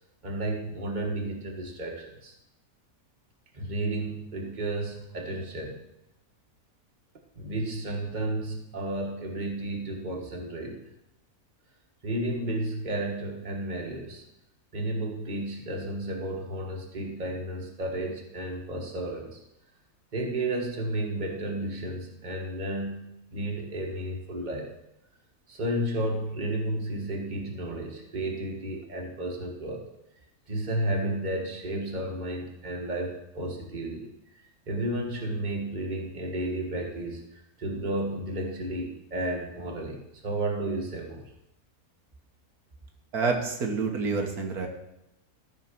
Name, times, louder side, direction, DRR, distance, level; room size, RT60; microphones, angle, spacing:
voice 1, 0.2-2.3 3.5-5.8 7.3-10.8 12.0-14.2 14.7-19.4 20.1-24.7 25.5-29.8 30.5-34.1 34.7-41.2, right 1 dB, 30° right, 1 dB, 1.7 m, -32 dB
voice 2, 43.1-44.7, right 4 dB, 80° right, 2 dB, 1.8 m, -28 dB
13.5 x 4.6 x 6.1 m, 0.84 s
omnidirectional pair, 1.6 m